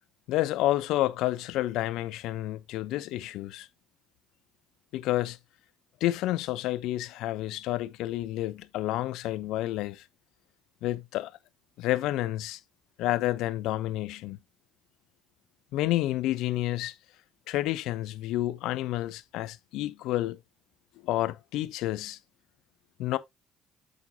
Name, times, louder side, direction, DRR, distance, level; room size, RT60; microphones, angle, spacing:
voice 1, 0.3-3.7 4.9-5.4 6.0-10.0 10.8-11.3 11.8-12.6 13.0-14.4 15.7-16.9 17.5-20.4 21.0-22.2 23.0-23.2, left 15 dB, 75° left, 0.6 m, -29 dB
8.1 x 6.1 x 2.8 m
hypercardioid pair, 60°, 0 cm